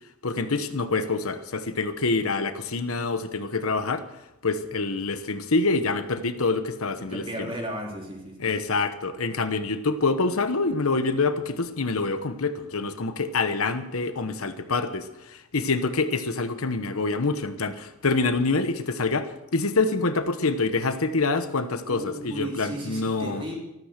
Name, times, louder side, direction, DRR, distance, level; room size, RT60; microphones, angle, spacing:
voice 1, 0.2-4.0 4.4-7.5 8.4-23.4, left 3 dB, 75° left, 10 dB, 1.1 m, -26 dB
voice 2, 7.1-8.3 21.8-23.6, equal, 25° right, 0 dB, 3.6 m, -34 dB
14.0 x 13.5 x 6.6 m, 0.92 s
head